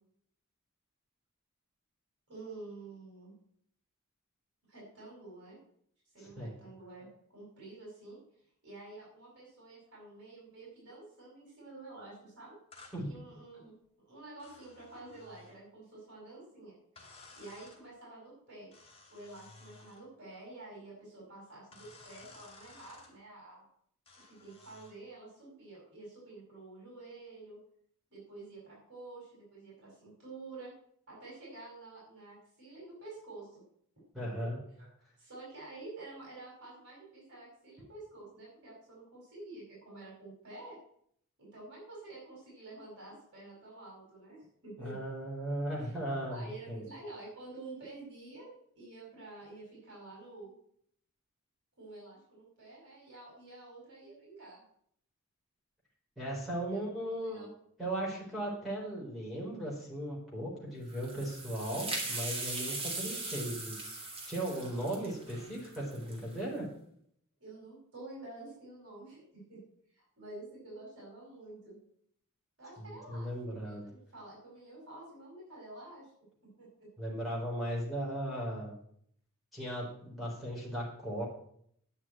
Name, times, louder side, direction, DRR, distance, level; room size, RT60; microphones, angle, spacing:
voice 1, 2.3-3.4 4.7-5.6 6.1-8.2 8.6-12.6 13.1-13.7 14.1-18.7 19.1-23.7 24.3-27.6 28.1-30.7 31.1-33.6 34.2-34.5 34.8-34.9 35.2-40.8 41.4-45.0 45.8-45.9 46.3-50.5 51.8-54.6 56.7-57.5 67.4-69.6 69.9-71.8 72.6-76.1 76.4-76.9, right 2 dB, 55° right, -4 dB, 5.4 m, -49 dB
sound 1, 12.7-13.0 14.4-15.6 17.0-17.8 18.7-20.0 21.7-23.1 24.1-25.0, left 3 dB, 25° left, 2.8 m, -56 dB
voice 2, 34.1-34.6 44.8-46.8 56.2-57.5 57.8-66.7 72.8-73.8 77.0-78.8 79.5-81.2, right 1 dB, ahead, -6 dB, 4.0 m, -37 dB
sound 2, 60.9-66.4, right 2 dB, 25° right, 2.8 m, -39 dB
10.0 x 6.1 x 8.7 m, 0.68 s
head